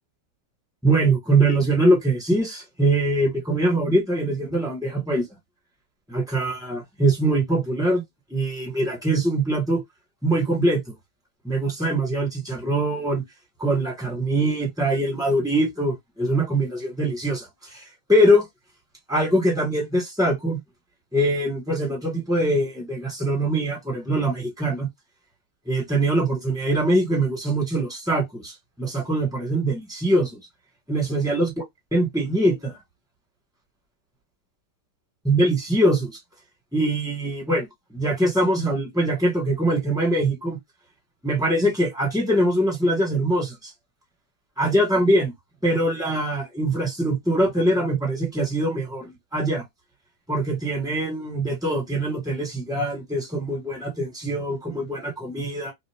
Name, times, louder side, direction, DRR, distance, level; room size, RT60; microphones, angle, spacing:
voice 1, 0.8-5.4 6.1-8.0 8.3-9.8 10.2-10.9 11.4-13.2 13.6-18.5 19.1-20.6 21.1-24.9 25.6-30.5 30.9-31.5 31.9-32.8 35.2-36.2 36.7-40.6 41.2-43.7 44.6-45.3 45.6-49.6 50.3-55.7, right 1 dB, ahead, 1.2 m, -23 dB
2.9 x 2.4 x 3.4 m
omnidirectional pair, 1.9 m